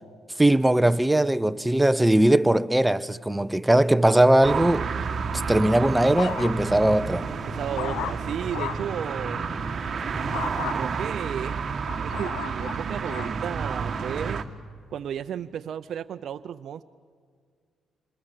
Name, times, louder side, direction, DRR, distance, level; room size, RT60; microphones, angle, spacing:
voice 1, 0.4-4.9 5.5-7.3, right 1 dB, 10° right, 0.6 m, -20 dB
sound 1, 4.4-14.4, right 5 dB, 45° right, 1.3 m, -30 dB
sound 2, 4.9-10.5, equal, 40° left, 5.0 m, -40 dB
sound 3, 5.5-6.8 7.3-9.0 10.3-10.8 11.4-13.4 14.0-14.4, left 11 dB, 85° left, 0.9 m, -36 dB
voice 2, 7.3-9.4 10.7-11.6 12.0-14.4 14.9-16.8, right 9 dB, 65° right, 0.5 m, -34 dB
26.5 x 21.0 x 7.4 m
cardioid pair, 90°, 0 cm